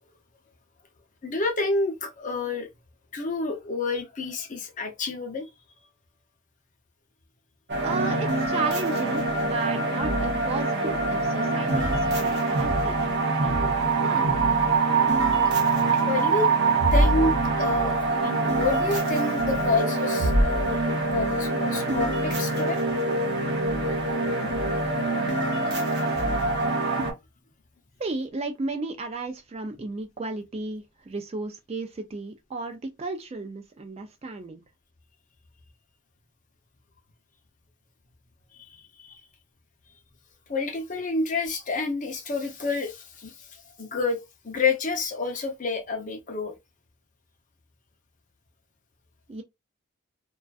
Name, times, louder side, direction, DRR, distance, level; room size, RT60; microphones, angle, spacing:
voice 1, 1.2-2.7 3.1-5.5 16.1-16.5 16.9-22.8 38.6-38.7 39.0-39.2 40.5-43.3 43.8-44.2 44.4-46.5, left 3 dB, 35° left, 0.6 m, -28 dB
sound 1, 7.7-27.1, right 2 dB, 50° right, 0.7 m, -24 dB
voice 2, 7.8-14.4 28.0-34.6 49.3-49.4, right 3 dB, 30° right, 0.3 m, -34 dB
2.4 x 2.3 x 2.3 m
head